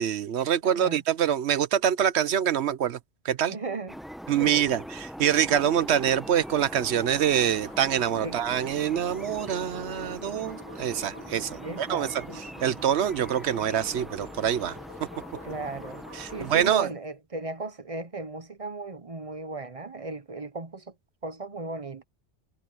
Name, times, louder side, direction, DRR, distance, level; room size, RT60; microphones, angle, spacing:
voice 1, 0.0-3.0 3.2-3.5 4.3-12.2 12.6-14.8 16.2-16.9, right 9 dB, 75° right, 1.0 m, -25 dB
voice 2, 0.6-1.0 3.5-4.0 4.4-4.7 8.2-8.4 11.6-12.4 15.4-20.9 21.2-22.0, right 3 dB, 35° right, 0.9 m, -36 dB
sound 1, 3.9-16.8, equal, ahead, 0.8 m, -42 dB
sound 2, 5.9-16.5, left 1 dB, 55° right, 5.0 m, -46 dB
omnidirectional pair, 1.1 m